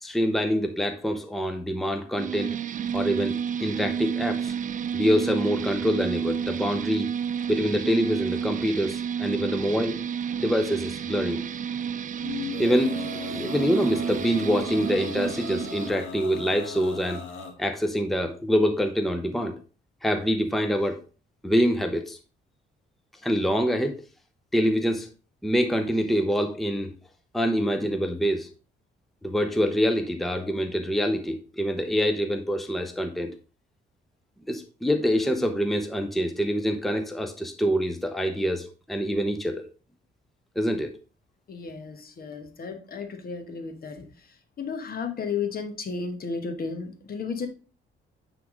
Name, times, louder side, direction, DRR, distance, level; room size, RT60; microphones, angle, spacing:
voice 1, 0.0-2.5 2.9-4.5 4.9-7.1 7.5-10.0 10.4-11.4 12.6-17.2 17.6-19.6 20.0-21.0 21.4-22.2 23.2-24.0 24.5-25.1 25.4-26.9 27.3-28.5 29.2-33.3 34.5-39.7 40.6-40.9, equal, ahead, 6 dB, 0.7 m, -25 dB
sound 1, 2.2-15.9, right 7 dB, 40° right, 0.4 m, -31 dB
Male singing, 12.2-17.5, left 3 dB, 75° left, 1.7 m, -37 dB
voice 2, 41.5-44.1 44.6-47.5, left 5 dB, 50° left, 7 dB, 1.2 m, -33 dB
9.3 x 3.6 x 3.8 m, 0.36 s
cardioid pair, 90°, 20 cm